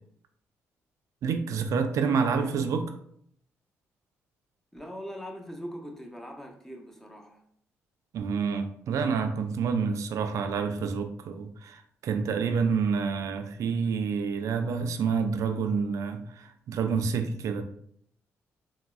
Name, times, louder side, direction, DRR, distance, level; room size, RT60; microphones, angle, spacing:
voice 1, 1.2-2.9 8.1-17.6, right 5 dB, 65° right, 0.3 m, -28 dB
voice 2, 4.7-7.4, equal, 5° left, 0.6 m, -41 dB
3.3 x 2.0 x 2.3 m
supercardioid pair, 65°, 6 cm